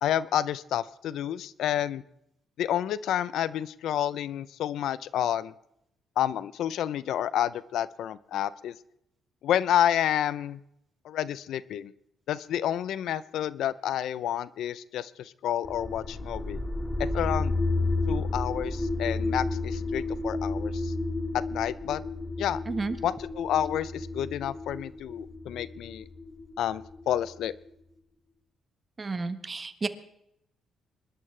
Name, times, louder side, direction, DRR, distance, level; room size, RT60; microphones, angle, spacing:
voice 1, 0.0-2.0 2.6-5.5 6.2-8.7 9.4-10.6 11.0-11.9 12.3-16.6 17.0-17.6 18.1-20.9 21.3-22.0 22.4-22.6 23.0-26.1 26.6-27.5, left 11 dB, 80° left, 17 dB, 0.6 m, -29 dB
sound 1, 15.6-27.4, left 2 dB, 20° left, 1.5 m, -32 dB
voice 2, 29.0-29.9, right 3 dB, 30° right, 10 dB, 1.4 m, -31 dB
25.0 x 12.5 x 3.3 m, 0.77 s
cardioid pair, 90°, 0 cm